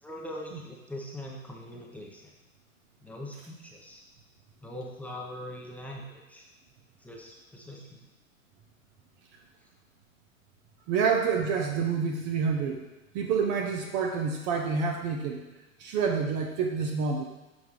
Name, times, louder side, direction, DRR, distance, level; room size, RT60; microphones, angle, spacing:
voice 1, 0.0-2.3 3.0-4.0 4.6-6.5 7.0-8.1, left 1 dB, 5° left, -2 dB, 0.8 m, -42 dB
voice 2, 10.9-12.8 13.1-15.4 15.8-17.2, right 5 dB, 30° right, 3 dB, 0.7 m, -28 dB
7.3 x 4.5 x 4.9 m, 1.0 s
figure-of-eight pair, 100°, 41 cm